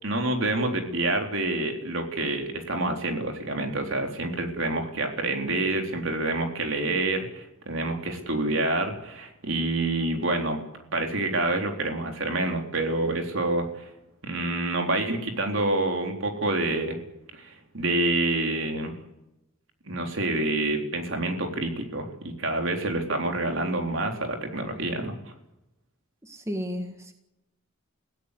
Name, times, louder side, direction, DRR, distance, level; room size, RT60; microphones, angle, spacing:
voice 1, 0.0-10.6 10.9-13.9 14.2-17.0 17.3-18.9 19.9-25.1, right 2 dB, 70° right, 3 dB, 3.8 m, -27 dB
voice 2, 26.2-27.1, equal, 15° right, 5 dB, 1.7 m, -33 dB
24.5 x 16.5 x 8.3 m, 0.91 s
head